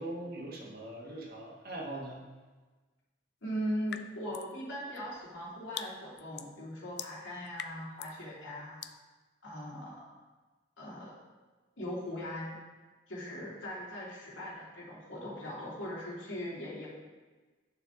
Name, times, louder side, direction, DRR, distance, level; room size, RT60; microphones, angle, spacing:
voice 1, 0.0-2.2, right 1 dB, 50° right, -1 dB, 1.6 m, -41 dB
voice 2, 3.4-8.8 9.4-10.0 10.8-11.1 11.8-12.6 13.1-16.9, equal, 85° left, -6 dB, 2.8 m, -39 dB
sound 1, 3.9-4.6 4.9-8.2 8.8-9.0, left 10 dB, 60° left, 0.4 m, -44 dB
8.8 x 6.8 x 3.8 m, 1.3 s
head